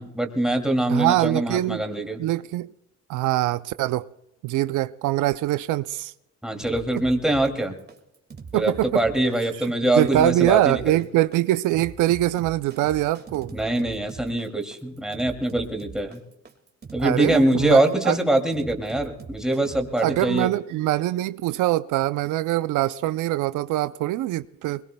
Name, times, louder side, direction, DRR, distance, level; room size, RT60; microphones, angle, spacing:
voice 1, 0.0-2.3 6.4-7.7 8.5-10.8 13.5-16.2 16.9-20.5, right 1 dB, ahead, 2.5 m, -23 dB
voice 2, 0.9-1.8 2.2-2.7 3.1-4.1 4.4-6.1 8.5-9.0 9.6-9.7 10.0-13.5 17.0-18.2 20.0-24.8, right 15 dB, 85° right, 0.5 m, -23 dB
sound 1, 6.6-20.2, right 5 dB, 35° right, 2.0 m, -42 dB
22.0 x 21.5 x 2.2 m
cardioid pair, 90°, 30 cm